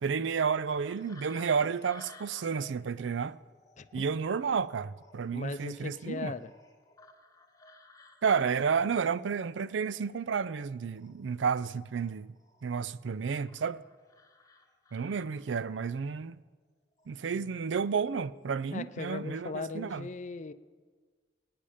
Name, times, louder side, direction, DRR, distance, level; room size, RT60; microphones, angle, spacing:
voice 1, 0.0-3.4 3.9-6.4 8.2-12.4 12.6-13.8 14.9-16.4 17.1-20.1, right 6 dB, 85° right, 0.4 m, -31 dB
sound 1, 0.7-10.7 11.0-12.9 13.5-15.7 16.9-17.2 17.6-18.1 18.4-18.7, left 2 dB, 20° left, 1.1 m, -57 dB
voice 2, 5.3-6.5 17.3-17.6 18.7-20.5, left 4 dB, 40° left, 0.5 m, -39 dB
23.5 x 9.8 x 5.1 m
head